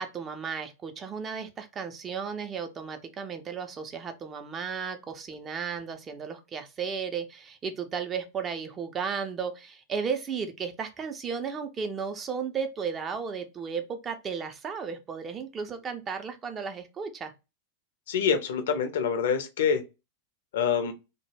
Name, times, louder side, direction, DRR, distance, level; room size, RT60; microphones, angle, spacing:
voice 1, 0.0-17.3, right 6 dB, 25° right, 0.4 m, -34 dB
voice 2, 18.1-19.8 20.5-20.9, left 6 dB, 60° left, 0.4 m, -26 dB
2.1 x 2.0 x 3.1 m
figure-of-eight pair, 90°, 0 cm